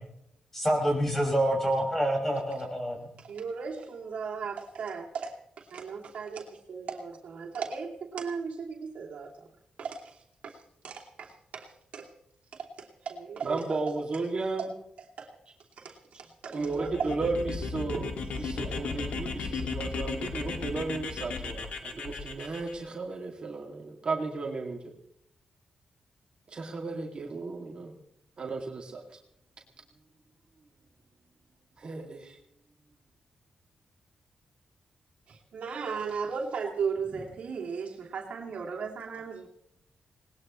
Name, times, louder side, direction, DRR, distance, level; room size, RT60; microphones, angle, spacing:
voice 1, 0.5-3.0, right 1 dB, 15° left, -1 dB, 5.9 m, -27 dB
voice 2, 3.2-9.3 9.8-10.2 10.4-10.6 10.8-12.1 12.5-13.8 15.2-15.3 15.8-17.1 17.9-18.1 35.3-39.5, right 5 dB, 75° right, 0 dB, 2.8 m, -36 dB
voice 3, 13.4-14.7 16.5-18.1 18.4-24.9 26.5-27.9 28.4-29.0 31.8-32.4, right 3 dB, 45° right, 0 dB, 2.5 m, -34 dB
sound 1, 16.7-22.7, left 4 dB, 80° left, 2.3 m, -35 dB
20.5 x 19.5 x 3.2 m, 0.75 s
cardioid pair, 90°, 2 cm